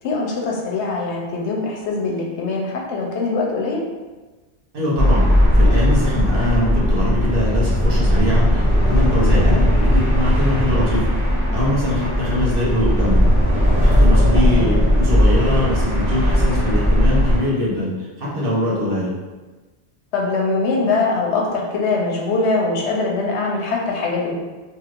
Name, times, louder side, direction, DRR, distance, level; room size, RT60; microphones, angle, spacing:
voice 1, 0.0-3.8 9.3-9.6 14.3-14.8 20.1-24.3, left 3 dB, 85° left, -1 dB, 0.9 m, -22 dB
voice 2, 4.7-5.2 5.5-9.5 9.8-11.1 11.5-13.2 13.8-19.1, left 1 dB, 55° right, -6 dB, 1.1 m, -22 dB
sound 1, 5.0-17.4, equal, 15° right, 0.8 m, -17 dB
3.0 x 3.0 x 2.5 m, 1.3 s
omnidirectional pair, 1.1 m